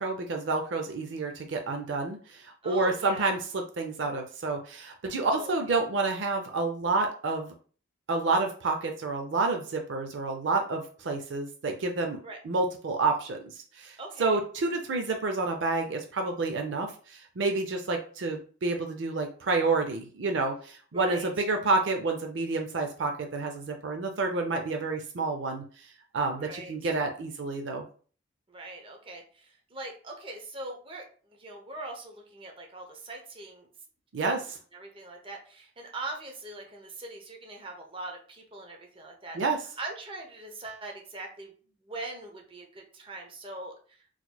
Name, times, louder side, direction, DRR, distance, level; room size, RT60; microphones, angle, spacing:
voice 1, 0.0-7.5 8.1-12.2 12.4-25.6 26.1-27.9 34.1-34.4 39.3-39.6, right 3 dB, 70° right, 3 dB, 0.5 m, -29 dB
voice 2, 2.6-3.3 5.3-5.8 12.2-12.4 14.0-14.4 20.9-21.3 26.3-26.9 28.5-33.7 34.2-34.4 34.7-39.4 39.8-41.5 41.8-43.7, right 2 dB, 30° right, 1 dB, 0.7 m, -41 dB
3.8 x 3.0 x 2.2 m, 0.41 s
head